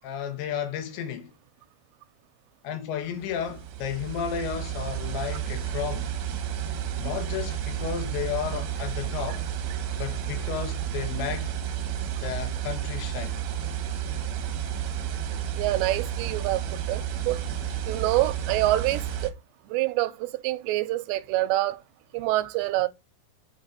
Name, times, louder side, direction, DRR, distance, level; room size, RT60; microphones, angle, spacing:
voice 1, 0.0-1.3 2.6-6.1 7.0-9.4 10.0-11.5 12.2-13.4, left 9 dB, 85° left, 3.7 m, -33 dB
sound 1, 3.2-19.3, right 9 dB, 65° right, 2.1 m, -31 dB
voice 2, 15.5-17.5 17.9-19.4 19.6-21.8 22.1-22.9, right 16 dB, 90° right, 2.9 m, -26 dB
6.9 x 6.5 x 4.4 m
omnidirectional pair, 5.0 m